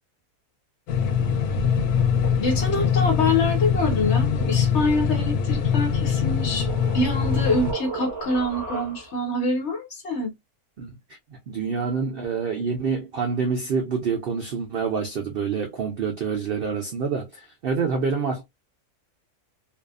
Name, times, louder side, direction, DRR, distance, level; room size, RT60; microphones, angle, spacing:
sound 1, 0.9-7.7, left 6 dB, 90° left, 1.1 m, -23 dB
voice 1, 2.4-6.7 6.9-10.3, left 2 dB, 50° left, 1.2 m, -25 dB
sound 2, 5.6-9.3, right 4 dB, 20° right, 0.7 m, -36 dB
voice 2, 11.5-18.4, right 5 dB, 85° right, 0.5 m, -27 dB
2.7 x 2.3 x 2.3 m
omnidirectional pair, 1.6 m